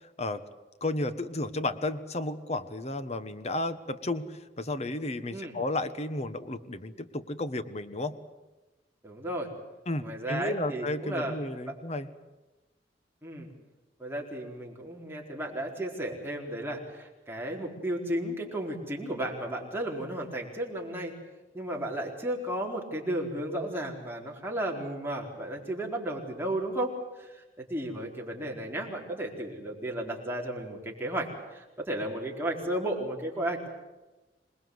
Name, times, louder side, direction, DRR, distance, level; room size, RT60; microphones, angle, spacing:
voice 1, 0.8-8.2 9.9-12.1, left 2 dB, 40° left, 11 dB, 1.3 m, -33 dB
voice 2, 9.0-9.5 10.0-11.4 11.7-11.8 13.2-13.5 14.0-21.1 21.5-33.7, right 1 dB, 15° right, -1 dB, 4.3 m, -34 dB
26.5 x 20.5 x 8.0 m, 1.1 s
head